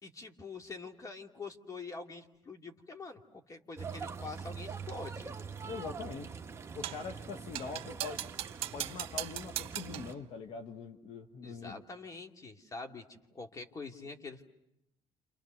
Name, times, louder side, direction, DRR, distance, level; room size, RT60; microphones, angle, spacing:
voice 1, 0.0-5.3 11.4-14.4, left 3 dB, 35° left, 4 dB, 2.4 m, -45 dB
sound 1, 3.8-10.1, right 5 dB, 25° right, 1.2 m, -44 dB
voice 2, 5.7-6.3 6.7-8.4 8.7-11.8, left 5 dB, 60° left, 6 dB, 1.5 m, -43 dB
sound 2, 6.8-7.1 7.5-10.1, right 13 dB, 70° right, 1.1 m, -39 dB
29.0 x 28.5 x 6.5 m, 0.83 s
cardioid pair, 105°, 10 cm